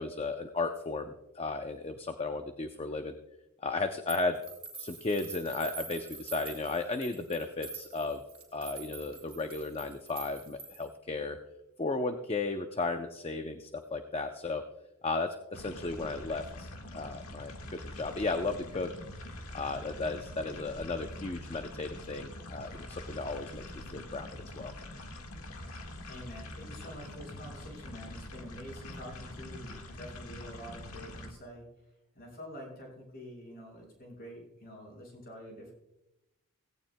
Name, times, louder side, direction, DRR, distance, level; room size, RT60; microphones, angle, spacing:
voice 1, 0.0-3.2 3.6-4.4 4.8-8.2 8.5-11.4 11.8-14.7 15.0-17.5 17.8-18.9 19.5-23.6 23.9-24.7, left 3 dB, 25° left, 7 dB, 0.5 m, -34 dB
sound 1, 4.1-10.9, right 5 dB, 25° right, 3.3 m, -46 dB
sound 2, 15.5-31.3, left 1 dB, 75° left, 1.6 m, -44 dB
voice 2, 26.0-31.7 32.1-35.7, equal, 45° left, -1 dB, 5.1 m, -47 dB
17.5 x 16.5 x 2.2 m, 0.92 s
head